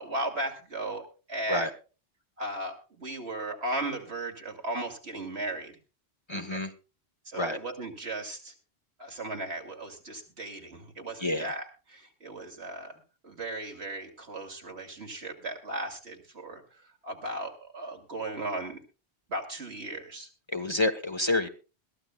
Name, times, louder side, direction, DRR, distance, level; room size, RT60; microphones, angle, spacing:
voice 1, 0.0-1.7 2.4-5.8 6.3-6.6 7.2-8.5 9.0-18.8 19.3-20.3, right 2 dB, 80° right, 2 dB, 2.9 m, -36 dB
voice 2, 6.3-6.7 7.4-7.6 11.2-11.5 20.5-21.5, left 2 dB, 30° left, 8 dB, 1.0 m, -28 dB
21.5 x 14.5 x 2.2 m, 0.33 s
omnidirectional pair, 1.1 m